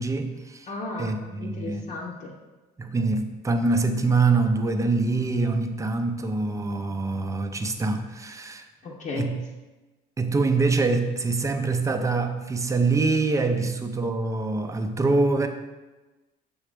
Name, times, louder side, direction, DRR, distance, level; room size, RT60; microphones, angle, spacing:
voice 1, 0.0-0.7 1.0-1.9 2.8-8.7 9.1-9.4 10.2-15.5, right 3 dB, 20° right, 6 dB, 0.6 m, -24 dB
voice 2, 0.7-2.3 8.8-9.3, left 3 dB, 50° left, -3 dB, 0.8 m, -34 dB
6.2 x 3.3 x 5.0 m, 1.2 s
cardioid pair, 110°, 17 cm